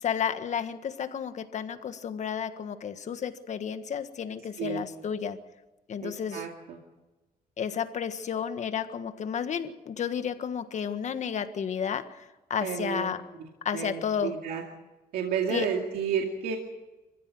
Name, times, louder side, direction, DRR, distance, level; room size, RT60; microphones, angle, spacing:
voice 1, 0.0-5.4 5.9-6.4 7.6-12.2 12.5-13.2 13.6-14.3 15.5-15.7, left 7 dB, 50° left, 10 dB, 1.6 m, -32 dB
voice 2, 6.0-6.8 12.6-13.1 13.4-14.6 15.1-16.6, right 6 dB, 85° right, 1 dB, 2.3 m, -31 dB
25.5 x 15.5 x 7.8 m, 1.1 s
cardioid pair, 125°, 16 cm